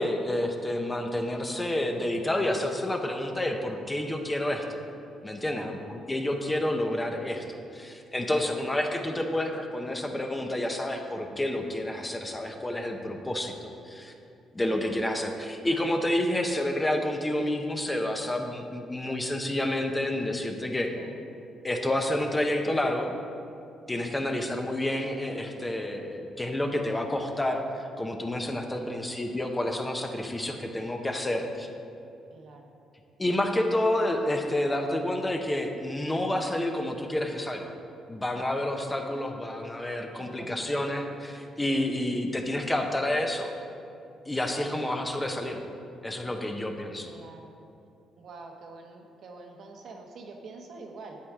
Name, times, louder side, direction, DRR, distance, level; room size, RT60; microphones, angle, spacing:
voice 1, 0.0-4.8 5.2-14.1 14.5-20.9 21.6-23.1 23.9-31.7 33.2-37.7 38.1-43.5 44.3-45.6 46.0-47.1, left 1 dB, 15° left, 3 dB, 0.8 m, -29 dB
voice 2, 5.4-5.8 8.4-8.6 14.6-14.8 20.9-21.1 23.9-24.3 28.7-28.9 32.3-32.7 40.1-40.8 44.5-44.8 47.0-47.5 48.2-51.2, right 3 dB, 65° right, 2 dB, 1.1 m, -46 dB
8.4 x 8.4 x 3.6 m, 2.6 s
cardioid pair, 90°, 0 cm